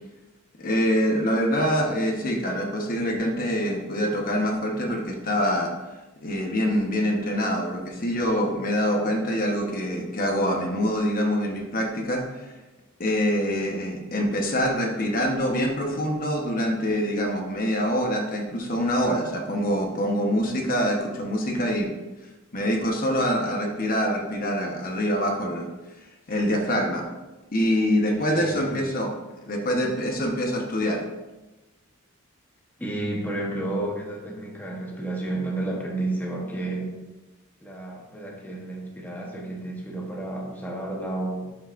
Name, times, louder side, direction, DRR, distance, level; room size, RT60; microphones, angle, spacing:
voice 1, 0.6-5.7 6.2-12.6 13.0-21.9 22.5-25.7 26.3-27.0 27.5-29.1 29.4-31.0, equal, 45° left, 1 dB, 1.1 m, -25 dB
voice 2, 28.1-28.8 32.8-36.9 37.6-41.5, right 2 dB, 10° left, -2 dB, 1.0 m, -31 dB
11.5 x 5.9 x 2.6 m, 1.1 s
head